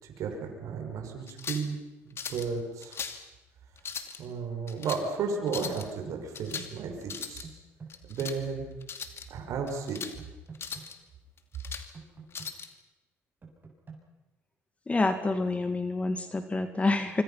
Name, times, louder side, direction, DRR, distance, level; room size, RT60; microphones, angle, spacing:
voice 1, 0.0-1.8 2.0-3.0 4.2-7.5 8.1-8.6 9.3-10.0, right 5 dB, 70° right, 2 dB, 6.0 m, -33 dB
sound 1, 1.3-1.7 2.2-2.5 2.8-3.2 3.8-4.2 4.7-5.0 5.5-5.9 6.4-6.7 7.0-7.5 7.9-8.4 8.8-9.3 9.7-10.2 10.6-10.9 11.4-11.9 12.3-12.7, left 6 dB, 45° left, 2.6 m, -39 dB
sound 2, 7.4-8.3 10.2-10.9 11.9-12.5 13.4-14.0, right 5 dB, 35° right, 7.4 m, -46 dB
voice 2, 14.9-17.2, left 3 dB, 25° left, 8 dB, 2.2 m, -27 dB
25.5 x 25.5 x 5.9 m, 1.0 s
supercardioid pair, 80°, 6 cm